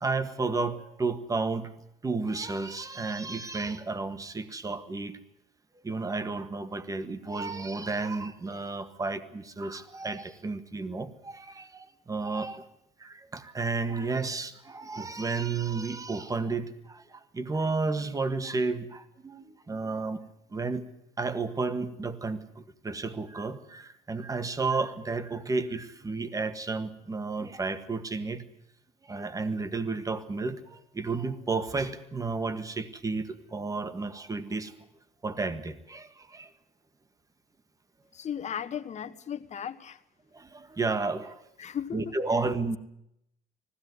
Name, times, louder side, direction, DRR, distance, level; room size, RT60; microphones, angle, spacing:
voice 1, 0.0-1.7 2.0-5.2 5.8-12.6 13.0-17.0 17.3-20.2 20.5-20.8 21.2-22.4 22.8-28.4 29.1-34.7 35.2-36.5 40.3-41.3 41.9-42.8, right 3 dB, 20° right, 1.6 m, -32 dB
voice 2, 38.1-40.0 41.6-42.2, left 8 dB, 45° left, 1.3 m, -36 dB
20.0 x 16.0 x 9.5 m
cardioid pair, 110°, 17 cm